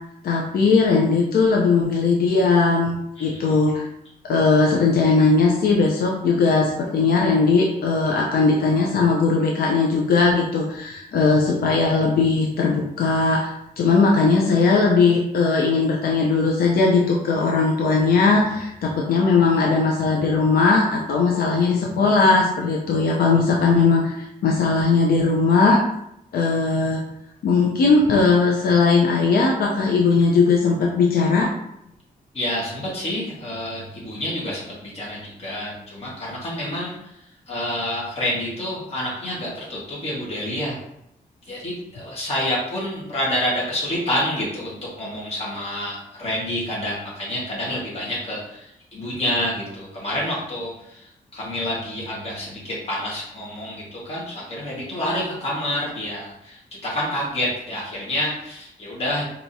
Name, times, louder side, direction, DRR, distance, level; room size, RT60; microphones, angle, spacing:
voice 1, 0.2-3.8 4.3-25.8 26.3-27.0 27.4-31.5, left 4 dB, 80° left, -1 dB, 0.6 m, -19 dB
voice 2, 3.2-3.6 32.3-36.9 37.5-40.8 41.5-59.2, left 1 dB, 40° left, -5 dB, 1.5 m, -28 dB
4.6 x 2.9 x 2.7 m, 0.79 s
wide cardioid pair, 160°, 15 cm